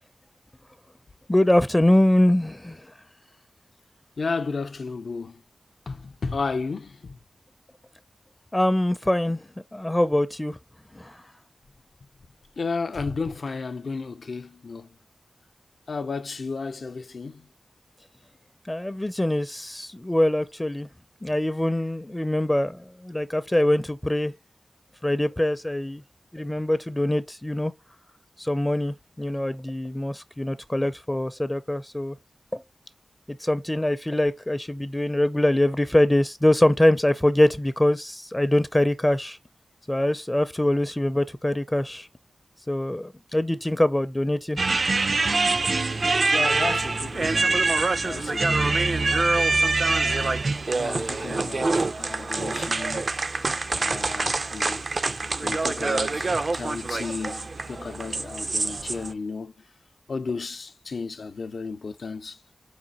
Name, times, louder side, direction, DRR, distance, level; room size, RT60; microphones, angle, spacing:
voice 1, 1.3-2.9 8.5-10.6 10.9-11.2 18.7-20.9 21.2-24.3 25.0-26.0 26.3-27.7 28.4-32.2 32.5-32.6 33.3-39.4 39.9-42.1 42.7-44.6, left 1 dB, 20° left, 0.4 m, -23 dB
voice 2, 4.2-5.4 5.9-7.2 12.6-15.0 15.9-17.5 46.3-47.7 48.0-49.2 49.8-53.1 53.7-54.9 55.4-59.5 60.1-62.4, left 4 dB, 70° left, 0.5 m, -33 dB
sound 1, 44.6-59.1, right 3 dB, 60° right, 0.4 m, -25 dB
4.9 x 2.5 x 4.1 m
cardioid pair, 50°, 0 cm